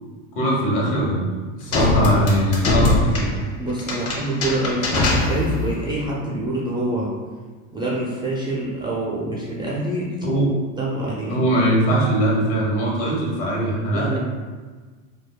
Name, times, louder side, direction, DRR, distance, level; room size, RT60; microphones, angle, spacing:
voice 1, 0.3-1.3 1.6-3.3 10.2-10.5 11.3-14.2, right 1 dB, 60° left, -3 dB, 1.5 m, -21 dB
sound 1, 1.7-5.8, left 2 dB, 35° left, 0.9 m, -22 dB
voice 2, 3.6-7.1 7.7-10.1 10.7-11.5 13.9-14.2, right 1 dB, 10° right, -5 dB, 0.4 m, -26 dB
5.0 x 2.2 x 2.3 m, 1.4 s
supercardioid pair, 115°, 41 cm